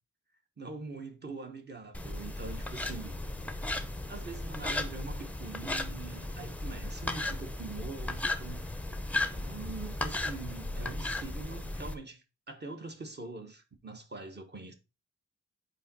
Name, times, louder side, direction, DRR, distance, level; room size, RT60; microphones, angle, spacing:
voice 1, 0.6-3.2 4.1-8.7 9.3-14.7, right 3 dB, 35° right, 1.1 m, -43 dB
sound 1, 1.9-12.0, left 2 dB, 5° left, 0.5 m, -36 dB
5.3 x 4.5 x 4.1 m
wide cardioid pair, 135°, 29 cm